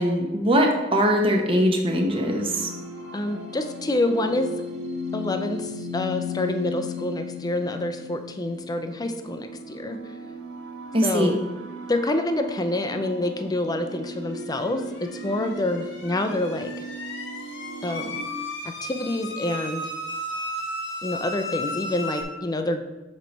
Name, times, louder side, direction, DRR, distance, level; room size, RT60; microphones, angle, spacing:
voice 1, 0.0-2.7 10.9-11.4, equal, 30° right, 2 dB, 0.8 m, -21 dB
sound 1, 2.1-18.2, left 2 dB, 70° right, 1.1 m, -36 dB
voice 2, 3.1-4.5 5.1-10.0 11.0-11.4 11.9-16.9 17.8-18.2 18.8-19.9 21.0-22.8, left 1 dB, 20° left, 7 dB, 0.5 m, -27 dB
sound 2, 14.6-22.2, left 1 dB, 70° left, 1.1 m, -35 dB
7.5 x 3.2 x 5.2 m, 1.1 s
head